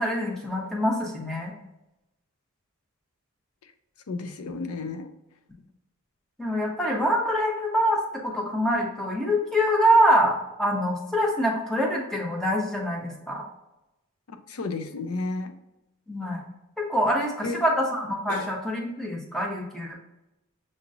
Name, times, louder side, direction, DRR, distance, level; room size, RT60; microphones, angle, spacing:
voice 1, 0.0-1.5 6.4-13.4 16.1-16.4 16.8-20.0, equal, ahead, -2 dB, 0.9 m, -25 dB
voice 2, 4.1-5.1 14.3-15.5 17.4-17.6 18.3-18.6, left 3 dB, 80° left, 7 dB, 0.5 m, -32 dB
6.4 x 3.0 x 2.6 m, 0.93 s
head